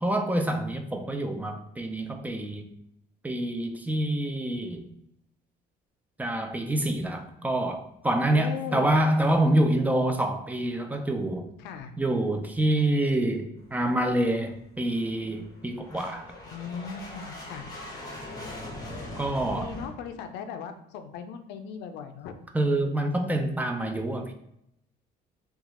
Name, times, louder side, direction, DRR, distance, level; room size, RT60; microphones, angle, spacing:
voice 1, 0.0-2.6 3.2-4.8 6.2-11.5 12.0-16.3 19.2-19.7 22.5-24.3, right 1 dB, 10° right, 4 dB, 0.3 m, -26 dB
voice 2, 8.3-9.0 11.6-11.9 16.5-17.7 19.5-22.3, left 7 dB, 90° left, 7 dB, 0.4 m, -38 dB
sound 1, 13.6-19.9, left 1 dB, 20° left, 0.9 m, -41 dB
2.9 x 2.3 x 2.8 m, 0.77 s
cardioid pair, 110°, 17 cm